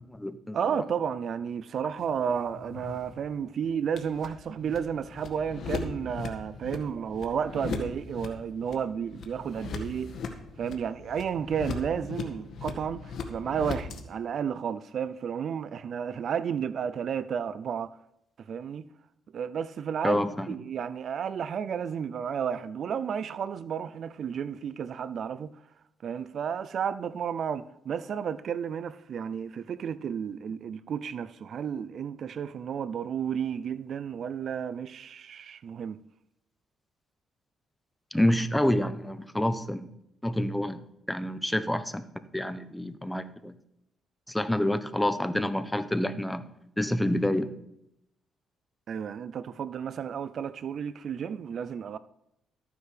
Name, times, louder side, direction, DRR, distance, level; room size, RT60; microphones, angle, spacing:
voice 1, 0.0-0.8 20.0-20.5 38.1-39.9 40.2-40.8 41.1-42.0 42.3-43.5 44.3-46.5 46.8-47.5, left 1 dB, 5° left, 0.8 m, -28 dB
voice 2, 0.5-10.1 10.6-18.0 18.4-18.9 19.3-25.5 26.0-36.0 48.9-52.0, right 7 dB, 60° right, 0.4 m, -32 dB
sound 1, 2.0-14.0, left 4 dB, 65° left, 1.7 m, -39 dB
14.0 x 9.6 x 3.3 m
cardioid pair, 90°, 0 cm